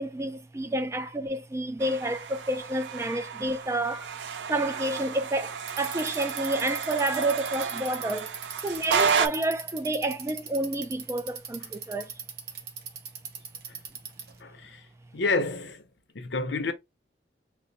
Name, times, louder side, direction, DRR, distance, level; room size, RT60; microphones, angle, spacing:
voice 1, 0.0-4.1 4.5-8.3 8.6-12.1, right 1 dB, 15° right, 0.3 m, -29 dB
sound 1, 1.8-9.3, right 6 dB, 80° right, 0.4 m, -31 dB
Bicycle, 5.6-14.4, right 7 dB, 60° right, 0.9 m, -39 dB
voice 2, 14.4-14.9 15.1-15.8 16.1-16.7, left 3 dB, 85° left, 0.8 m, -29 dB
4.1 x 2.1 x 4.0 m
head